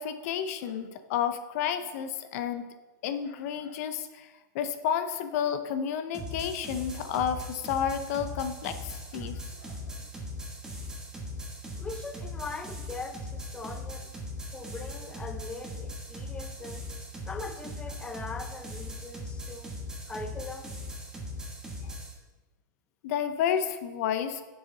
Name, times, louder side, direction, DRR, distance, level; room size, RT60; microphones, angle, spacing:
voice 1, 0.0-2.7 3.0-4.3 4.5-9.8 23.0-24.4, left 8 dB, 50° left, 9 dB, 0.7 m, -31 dB
sound 1, 6.1-22.1, left 1 dB, 5° right, 1.5 m, -39 dB
voice 2, 11.8-14.1 14.5-16.9 17.3-19.8 20.1-20.7, left 3 dB, 10° left, 8 dB, 0.5 m, -41 dB
9.2 x 7.2 x 3.9 m, 1.2 s
hypercardioid pair, 145°, 10 cm